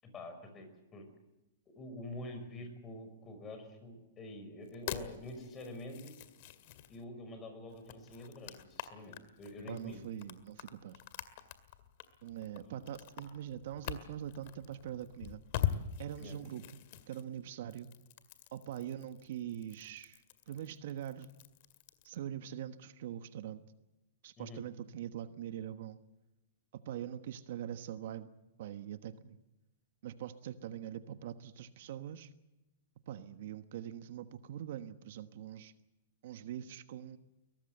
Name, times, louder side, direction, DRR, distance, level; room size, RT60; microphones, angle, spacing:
voice 1, 0.0-1.0 1.7-6.1 6.9-10.0 12.6-12.7 16.2-16.4 24.4-24.6, left 1 dB, 20° left, 7 dB, 5.5 m, -47 dB
sound 1, 4.6-7.0 7.7-22.2, left 11 dB, 50° left, 2.0 m, -43 dB
voice 2, 9.7-11.0 12.2-15.4 16.0-16.8 17.1-17.9 18.5-21.3 22.0-23.6 24.2-26.0 26.8-28.3 28.6-29.4 30.0-32.3 33.1-35.7 36.2-37.2, right 10 dB, 60° right, 10 dB, 1.3 m, -43 dB
23.0 x 19.0 x 8.0 m, 0.98 s
hypercardioid pair, 155°, 0 cm